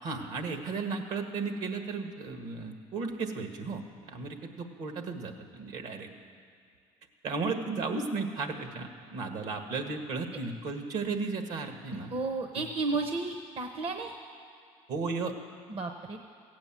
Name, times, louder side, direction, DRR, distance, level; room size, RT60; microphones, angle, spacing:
voice 1, 0.0-6.1 7.2-12.1 14.9-15.3, right 4 dB, 70° right, 5 dB, 1.6 m, -34 dB
voice 2, 11.9-14.1 15.7-16.2, right 3 dB, 45° right, 5 dB, 0.9 m, -33 dB
15.5 x 8.8 x 7.4 m, 2.3 s
supercardioid pair, 80°, 13 cm